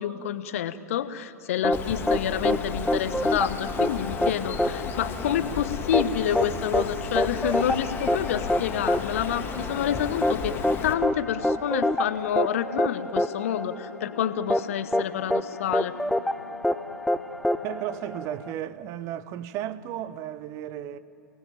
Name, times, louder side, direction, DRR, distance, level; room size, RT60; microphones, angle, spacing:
voice 1, 0.0-10.5 10.8-15.9, left 10 dB, 55° left, 1.1 m, -28 dB
sound 1, 1.6-18.5, left 1 dB, 5° left, 0.6 m, -27 dB
Bird, 1.7-10.9, left 4 dB, 25° left, 2.4 m, -34 dB
sound 2, 11.4-19.0, left 2 dB, 90° left, 1.0 m, -44 dB
voice 2, 17.6-21.0, right 11 dB, 35° right, 0.9 m, -34 dB
28.0 x 18.5 x 9.1 m
figure-of-eight pair, 100°, 9 cm